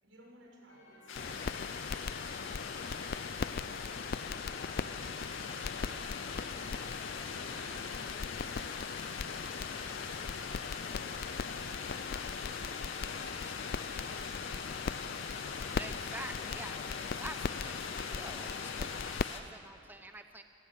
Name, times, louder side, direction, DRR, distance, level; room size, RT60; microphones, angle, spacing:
voice 1, 0.0-3.1 3.6-6.9 7.3-8.6 9.3-15.8, right 1 dB, 80° right, -1 dB, 6.3 m, -59 dB
sound 1, 0.7-9.5, left 2 dB, 70° left, 7.8 m, -61 dB
sound 2, 1.1-19.4, left 5 dB, 85° left, 2.2 m, -43 dB
sound 3, 1.1-19.2, left 5 dB, 50° left, 0.4 m, -39 dB
voice 2, 3.7-4.2 15.8-20.4, right 2 dB, 10° right, 7 dB, 0.8 m, -48 dB
25.5 x 18.5 x 9.0 m, 2.9 s
head